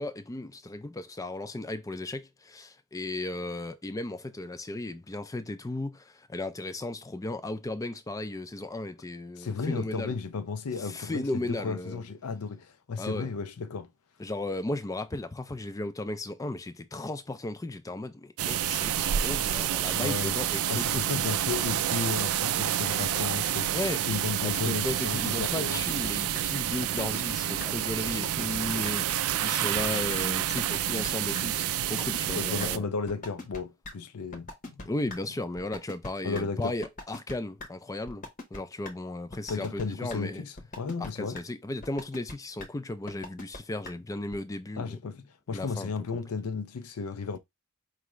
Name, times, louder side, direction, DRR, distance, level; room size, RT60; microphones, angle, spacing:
voice 1, 0.0-10.1 10.8-12.0 13.0-13.3 14.2-21.0 23.7-24.0 24.4-32.9 34.8-38.3 38.5-40.4 41.0-45.0 45.5-45.9, left 2 dB, 15° left, 0.3 m, -35 dB
voice 2, 9.4-13.9 19.9-20.4 20.7-23.8 24.1-25.8 32.3-34.9 36.2-36.8 39.5-41.4 44.8-47.4, left 5 dB, 80° left, 0.5 m, -34 dB
sound 1, 18.4-32.8, right 11 dB, 75° right, 0.4 m, -29 dB
sound 2, 25.7-26.1 26.4-26.5 26.8-27.3 27.6-27.7 28.1-28.6 28.9-29.0 29.3-29.8 30.1-30.2 30.6-31.1 31.3-31.4 31.8-32.4 32.6-32.7 33.1-33.6 33.8-33.9 34.3-35.2 35.6-36.4 36.8-37.3 37.6-37.7 38.1-38.6 38.9-39.0 39.3-39.8 40.1-40.2 40.6-41.1 41.4-41.5 41.8-42.3 42.6-42.7 43.1-43.6 43.9-44.0 44.3-44.4, left 2 dB, 40° left, 0.8 m, -40 dB
4.7 x 2.4 x 3.1 m
head